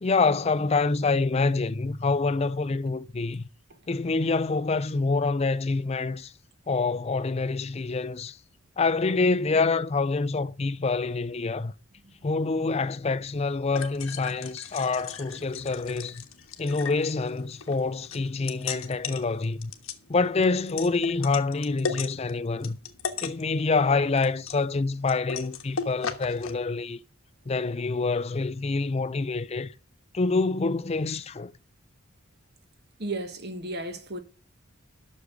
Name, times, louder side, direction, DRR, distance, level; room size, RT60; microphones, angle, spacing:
voice 1, 0.0-3.5 3.9-6.3 6.7-8.4 8.8-11.7 12.2-16.2 16.6-19.7 20.1-22.8 23.2-27.0 27.5-29.7 30.1-31.5, left 3 dB, 30° left, 0.5 m, -26 dB
sound 1, 13.2-26.5, left 6 dB, 85° left, 1.3 m, -38 dB
voice 2, 33.0-34.2, right 2 dB, 50° right, 1.3 m, -34 dB
8.2 x 6.5 x 7.7 m
head